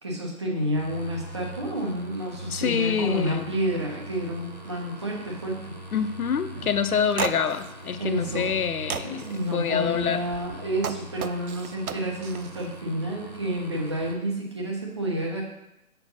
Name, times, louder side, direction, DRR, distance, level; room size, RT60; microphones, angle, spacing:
voice 1, 0.0-5.7 8.0-8.5 9.0-15.4, right 1 dB, 20° right, -2 dB, 1.0 m, -30 dB
sound 1, 0.7-14.1, right 1 dB, 30° left, 0.5 m, -42 dB
sound 2, 1.7-1.9 2.2-3.4 3.6-4.9 5.2-5.5 5.9-6.2 6.5-10.5, right 3 dB, 40° right, 3.3 m, -49 dB
voice 2, 2.5-3.5 5.9-10.2, left 7 dB, 90° left, 11 dB, 0.8 m, -26 dB
sound 3, 7.2-7.7 8.3-8.6 8.9-9.4 10.3-12.7, right 7 dB, 80° right, 0.6 m, -33 dB
7.0 x 5.0 x 5.4 m, 0.87 s
hypercardioid pair, 175°, 43 cm